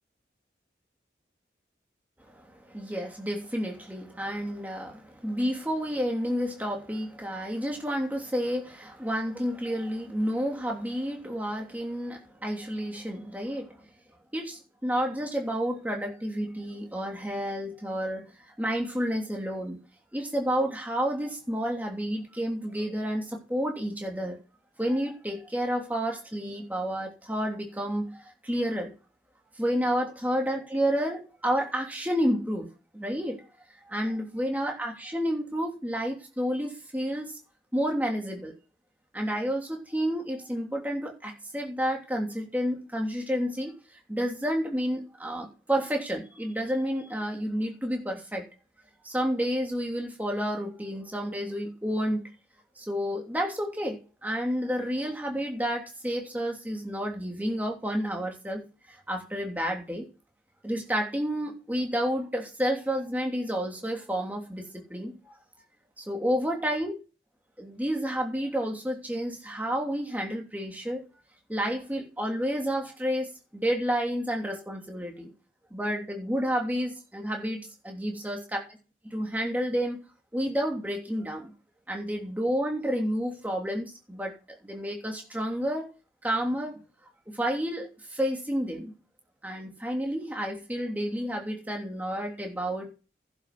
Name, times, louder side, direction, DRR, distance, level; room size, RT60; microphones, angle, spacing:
voice 1, 2.3-13.9 14.3-18.2 18.6-19.8 20.1-24.4 24.8-28.9 29.6-32.7 32.9-33.4 33.8-37.3 37.7-38.5 39.1-43.7 44.1-48.5 49.0-52.3 52.8-60.1 60.6-65.4 66.0-66.9 67.6-71.0 71.5-75.3 75.7-78.8 79.0-80.0 80.3-81.5 81.9-84.3 84.6-85.9 86.2-86.8 87.3-88.9 89.4-92.9, equal, 10° right, 3.0 m, -30 dB
11.0 x 7.1 x 6.1 m
head